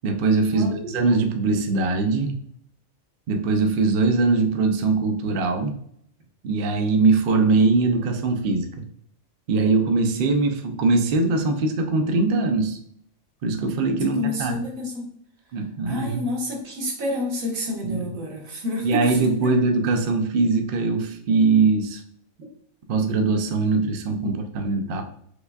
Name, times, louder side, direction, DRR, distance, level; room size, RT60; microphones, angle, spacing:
voice 1, 0.0-2.4 3.3-5.8 6.4-8.7 9.5-12.8 13.4-14.5 15.5-16.2 17.8-18.1 18.8-22.0 22.9-25.0, right 3 dB, 60° right, 5 dB, 0.5 m, -21 dB
voice 2, 14.0-15.1 15.9-19.6 24.2-24.3, left 2 dB, 80° right, -1 dB, 1.4 m, -29 dB
5.0 x 2.3 x 2.3 m, 0.66 s
omnidirectional pair, 1.4 m